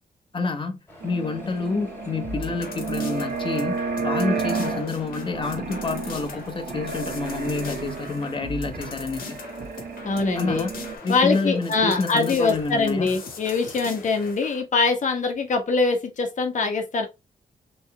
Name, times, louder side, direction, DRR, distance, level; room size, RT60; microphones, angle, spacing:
voice 1, 0.3-3.8 4.0-9.4 10.3-10.7 11.0-13.1, left 3 dB, 35° left, 1.0 m, -28 dB
sound 1, 0.9-14.3, equal, 15° left, 2.9 m, -48 dB
sound 2, 1.0-11.0, right 5 dB, 75° right, 1.5 m, -32 dB
sound 3, 2.2-14.6, left 4 dB, 80° left, 1.3 m, -40 dB
voice 2, 10.0-10.7 11.1-17.1, left 4 dB, 55° left, 1.2 m, -23 dB
4.1 x 3.4 x 3.1 m
cardioid pair, 100°, 15 cm